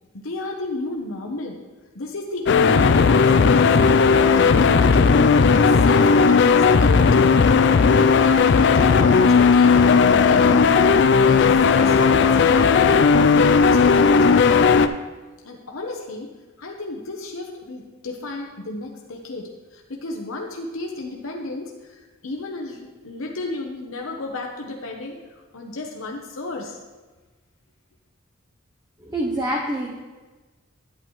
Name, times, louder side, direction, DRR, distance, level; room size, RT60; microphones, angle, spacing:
voice 1, 0.1-1.6 1.9-3.8 4.3-5.1 5.5-7.3 8.0-10.8 11.2-14.9 15.4-16.3 16.6-26.8, left 2 dB, 85° left, 1 dB, 0.9 m, -33 dB
sound 1, 2.5-14.9, left 5 dB, 60° left, 0.4 m, -15 dB
voice 2, 29.0-30.0, right 1 dB, 20° right, -2 dB, 0.8 m, -26 dB
11.0 x 8.6 x 3.1 m, 1.2 s
head